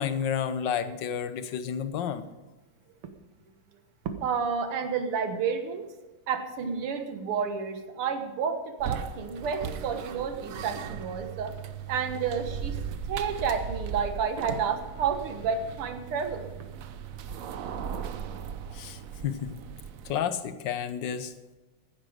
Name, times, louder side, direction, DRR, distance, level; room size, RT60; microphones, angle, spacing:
voice 1, 0.0-2.3 18.7-19.6 20.0-21.3, left 8 dB, 65° left, 11 dB, 1.5 m, -31 dB
voice 2, 4.2-5.9 6.3-11.5 11.9-16.5, right 6 dB, 90° right, 7 dB, 2.3 m, -30 dB
sound 1, 8.8-20.2, right 7 dB, 70° right, 0.8 m, -38 dB
15.5 x 10.5 x 5.0 m, 1.2 s
omnidirectional pair, 2.4 m